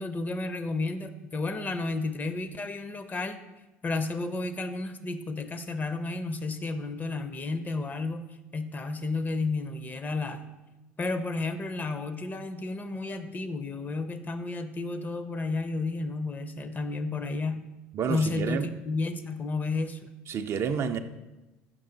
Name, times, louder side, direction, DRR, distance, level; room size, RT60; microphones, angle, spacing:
voice 1, 0.0-3.4 3.8-8.3 8.5-10.5 11.0-17.7 18.1-20.1, left 3 dB, 30° left, 10 dB, 0.6 m, -32 dB
voice 2, 17.9-18.7 20.3-21.0, right 7 dB, 45° right, 8 dB, 0.4 m, -29 dB
6.1 x 5.3 x 3.9 m, 1.0 s
hypercardioid pair, 70°, 6 cm